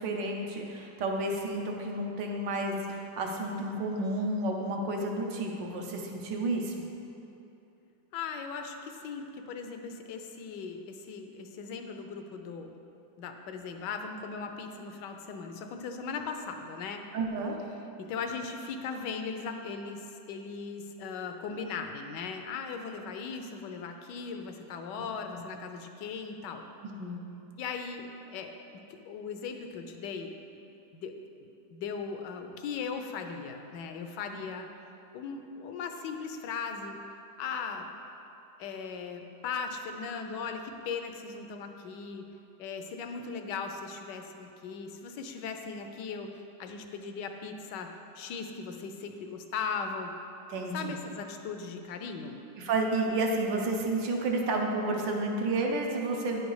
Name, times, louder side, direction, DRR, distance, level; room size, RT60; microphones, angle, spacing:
voice 1, 0.0-6.8 17.1-17.6 25.3-25.4 27.0-27.2 50.5-51.0 52.6-56.4, right 2 dB, 80° right, 1 dB, 1.5 m, -31 dB
voice 2, 8.1-12.8 13.2-17.0 18.0-26.6 27.6-30.6 30.9-31.1 31.4-37.0 37.4-37.9 38.6-42.2 42.6-47.9 48.1-50.1 50.7-52.4, left 5 dB, 75° left, 5 dB, 1.2 m, -38 dB
9.9 x 5.2 x 4.7 m, 2.8 s
omnidirectional pair, 1.9 m